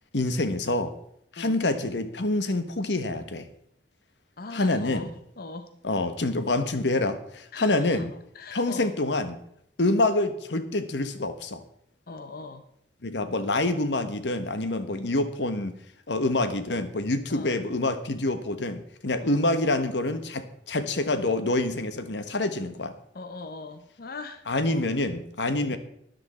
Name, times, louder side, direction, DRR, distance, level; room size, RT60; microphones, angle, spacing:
voice 1, 0.1-0.9 1.3-3.5 4.5-5.1 5.8-8.1 8.5-9.4 9.8-11.6 13.0-15.8 16.1-22.9 24.5-25.8, left 2 dB, 90° left, 10 dB, 1.2 m, -26 dB
voice 2, 4.4-5.1 5.4-5.7 7.5-8.0 8.3-8.9 12.1-12.6 17.3-17.6 19.2-19.4 23.1-24.9 25.5-25.8, left 3 dB, 60° left, 8 dB, 0.8 m, -40 dB
13.0 x 10.5 x 4.3 m, 0.69 s
head